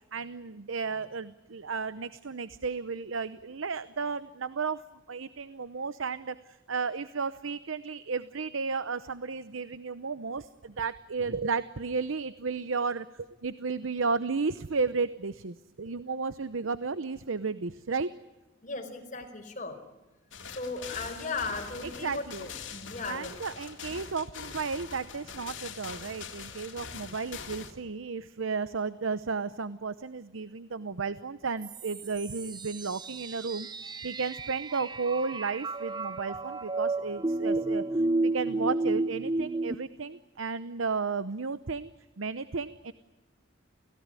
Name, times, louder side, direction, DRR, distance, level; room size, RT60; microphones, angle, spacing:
voice 1, 0.1-18.1 22.0-22.5 23.0-37.8 38.2-41.9 42.2-42.9, right 4 dB, 85° right, 14 dB, 0.8 m, -33 dB
voice 2, 18.6-19.8 20.5-23.4, left 3 dB, 40° left, 5 dB, 4.7 m, -37 dB
sound 1, 20.3-27.7, left 6 dB, 65° left, 3.2 m, -43 dB
sound 2, 31.6-39.7, right 2 dB, 20° right, 0.8 m, -32 dB
29.5 x 17.0 x 9.8 m, 1.1 s
head